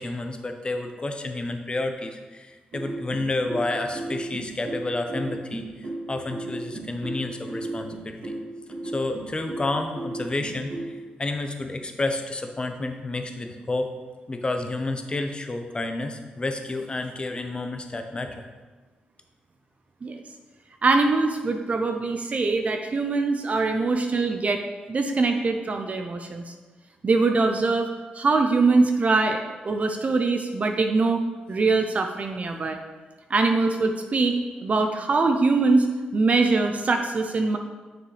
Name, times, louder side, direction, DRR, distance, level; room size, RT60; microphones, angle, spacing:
voice 1, 0.0-8.4 8.8-13.9 14.3-18.4, left 2 dB, 30° left, 6 dB, 0.8 m, -30 dB
sound 1, 2.7-10.9, right 2 dB, 75° right, 2.4 m, -35 dB
voice 2, 20.8-24.6 24.9-26.5 27.0-31.2 31.5-32.8 33.3-35.9 36.1-37.6, right 3 dB, 45° right, 5 dB, 0.6 m, -23 dB
7.3 x 6.1 x 3.3 m, 1.3 s
cardioid pair, 65°, 3 cm